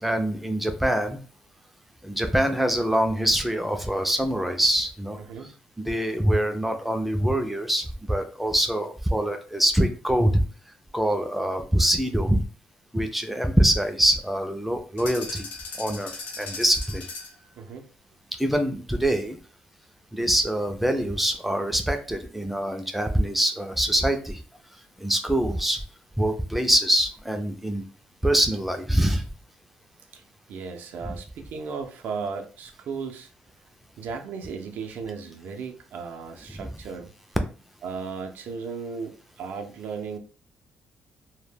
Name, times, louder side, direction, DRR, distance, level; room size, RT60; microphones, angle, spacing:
voice 1, 0.0-1.2 2.0-5.2 5.8-10.4 10.9-12.4 12.9-15.5 15.8-16.1 16.4-17.0 18.4-19.4 20.1-24.4 25.0-25.8 26.2-27.8 28.2-29.2 31.0-31.1 36.5-36.7, right 1 dB, 5° right, 6 dB, 0.3 m, -24 dB
voice 2, 5.1-5.5 17.6-17.9 30.1-30.2 30.5-33.3 34.0-37.1 37.8-40.2, right 5 dB, 70° right, 5 dB, 0.5 m, -35 dB
sound 1, 15.0-17.5, left 3 dB, 80° left, 0.8 m, -38 dB
2.1 x 2.1 x 3.2 m, 0.39 s
cardioid pair, 160°, 3 cm